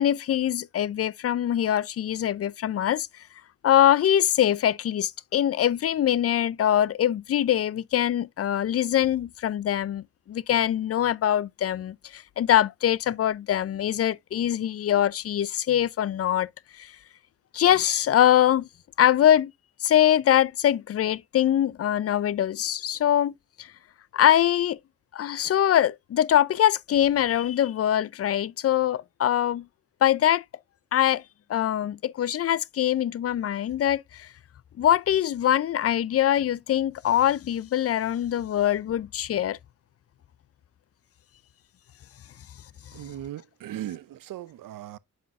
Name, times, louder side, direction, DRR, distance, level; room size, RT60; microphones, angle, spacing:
voice 1, 0.0-3.1 3.6-16.5 16.8-16.9 17.5-18.7 19.0-19.5 19.8-23.7 24.1-24.8 25.1-29.7 30.0-30.4 30.9-31.2 31.5-34.3 34.8-39.6, left 11 dB, 45° left, 0.4 m, -23 dB
voice 2, 42.9-45.0, right 12 dB, 70° right, 0.6 m, -38 dB
7.9 x 5.3 x 2.5 m
cardioid pair, 65°, 34 cm